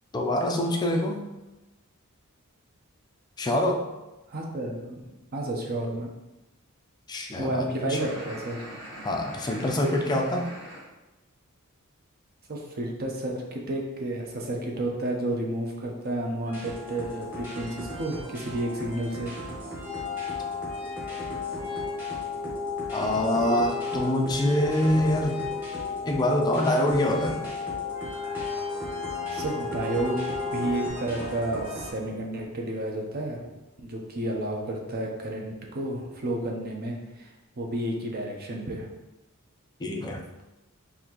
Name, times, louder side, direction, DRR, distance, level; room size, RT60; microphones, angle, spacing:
voice 1, 0.1-1.2 3.4-3.9 7.1-7.6 7.9-8.0 9.0-10.5 22.9-25.4 26.1-27.4 39.8-40.2, left 1 dB, 20° left, 2 dB, 0.4 m, -25 dB
voice 2, 4.3-6.1 7.4-8.6 9.6-9.8 12.5-19.3 29.3-30.2 30.5-33.5 33.8-37.3 37.6-38.9, right 1 dB, 45° right, 0 dB, 0.6 m, -31 dB
sound 1, 7.9-10.8, equal, 60° right, 1.3 m, -42 dB
sound 2, 16.5-31.9, equal, 10° right, 1.0 m, -38 dB
sound 3, 19.8-30.9, left 5 dB, 90° left, 0.7 m, -34 dB
4.1 x 2.7 x 2.9 m, 1.0 s
head